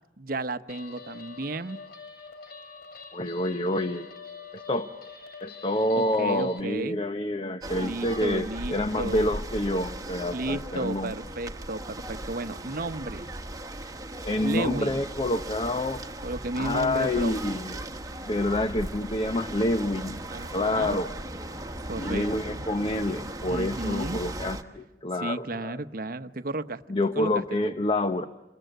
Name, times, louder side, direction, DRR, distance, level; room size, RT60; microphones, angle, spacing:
voice 1, 0.2-1.8 5.9-7.0 7.8-9.4 10.3-13.3 14.4-15.0 16.2-17.5 20.3-21.0 21.9-22.7 23.5-24.2 25.2-26.8 27.1-27.7, right 2 dB, 55° right, 12 dB, 0.9 m, -33 dB
Guitar, 0.7-6.6, left 5 dB, 60° left, 2.6 m, -45 dB
voice 2, 3.1-4.1 4.5-4.9 5.4-11.1 14.2-16.0 16.6-17.9 18.3-20.2 20.5-21.1 22.0-25.8 26.9-28.3, left 1 dB, 30° left, 9 dB, 0.9 m, -28 dB
sound 1, 7.6-24.6, right 1 dB, 20° right, 1.3 m, -37 dB
28.0 x 22.0 x 9.2 m, 1.0 s
head